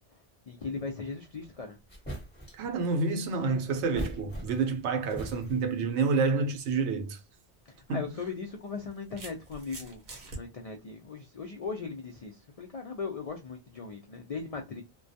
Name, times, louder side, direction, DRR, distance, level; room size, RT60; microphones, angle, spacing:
voice 1, 0.5-1.8 7.7-10.0 10.3-14.8, left 4 dB, 70° left, 0.3 m, -38 dB
Dropping Bag, 1.4-1.5 1.9-2.7 3.7-4.8 5.1-5.8, right 1 dB, 10° left, 0.9 m, -40 dB
voice 2, 2.6-7.2 7.9-8.0, right 4 dB, 75° right, 0.9 m, -28 dB
sound 1, 7.2-7.4 8.5-10.4, right 2 dB, 50° right, 0.8 m, -44 dB
2.2 x 2.2 x 2.6 m
omnidirectional pair, 1.2 m